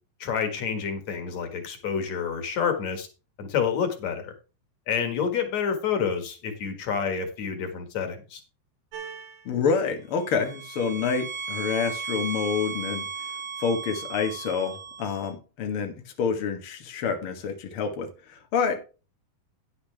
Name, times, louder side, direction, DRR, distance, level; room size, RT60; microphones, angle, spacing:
voice 1, 0.2-3.1 3.4-4.3 4.9-8.4, left 7 dB, 55° left, 2.3 m, -28 dB
sound 1, 8.9-9.5 10.2-15.3, right 5 dB, 65° right, 2.7 m, -36 dB
voice 2, 9.4-13.1 13.6-18.8, left 6 dB, 90° left, 1.2 m, -28 dB
10.0 x 9.8 x 3.4 m
omnidirectional pair, 4.8 m